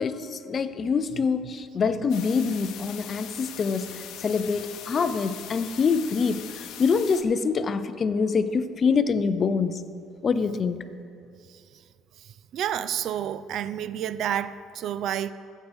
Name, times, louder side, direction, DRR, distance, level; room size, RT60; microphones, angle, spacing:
voice 1, 0.0-9.8 10.2-10.8, left 5 dB, 30° left, 12 dB, 0.4 m, -25 dB
sound 1, 2.1-7.2, left 10 dB, 65° left, 0.7 m, -41 dB
voice 2, 12.5-15.3, right 10 dB, 55° right, 15 dB, 0.3 m, -29 dB
15.5 x 8.2 x 3.5 m, 2.4 s
cardioid pair, 140°, 0 cm